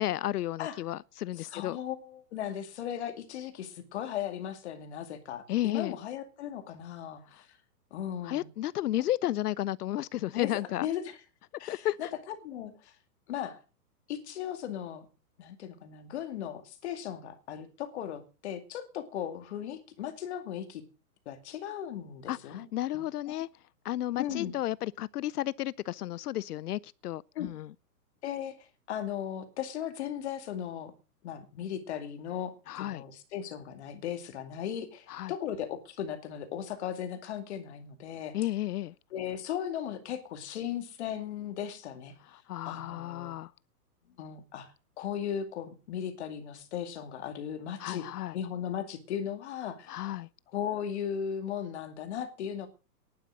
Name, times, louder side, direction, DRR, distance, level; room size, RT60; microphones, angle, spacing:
voice 1, 0.0-1.8 5.5-5.9 8.2-10.9 11.7-12.0 22.3-23.5 23.8-27.7 32.7-33.0 35.1-35.3 38.3-38.9 42.5-43.5 47.8-48.3 49.9-50.3, left 14 dB, 70° left, 0.6 m, -32 dB
voice 2, 1.4-7.5 7.9-8.5 8.9-9.0 10.3-11.2 11.6-13.0 13.3-13.6 14.1-15.1 15.4-20.8 21.3-22.7 22.9-23.4 24.1-24.5 27.3-27.5 28.2-30.9 31.2-38.4 39.1-42.1 42.6-43.4 44.2-48.1 48.3-50.0 50.5-52.7, left 9 dB, 45° left, 2.4 m, -37 dB
11.5 x 9.3 x 7.3 m
hypercardioid pair, 165°, 47 cm